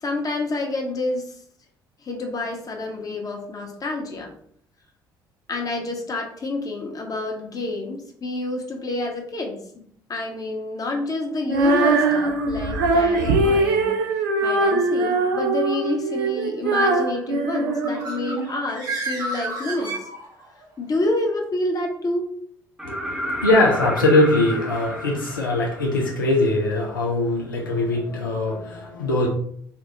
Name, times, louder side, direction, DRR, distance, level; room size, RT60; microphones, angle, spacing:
voice 1, 0.0-1.3 2.0-4.3 5.5-9.6 10.1-13.9 14.4-19.9 20.8-22.3, left 2 dB, 35° left, 1 dB, 0.9 m, -28 dB
Female singing, 11.5-18.5, right 3 dB, 75° right, 0.5 m, -21 dB
Bird, 17.6-20.6, right 2 dB, 35° right, 1.3 m, -32 dB
voice 2, 22.8-29.3, left 2 dB, 90° left, -2 dB, 0.5 m, -21 dB
sound 1, 22.8-26.6 28.5-28.6, equal, 5° right, 0.7 m, -31 dB
3.3 x 2.3 x 3.0 m, 0.63 s
figure-of-eight pair, 50°, 11 cm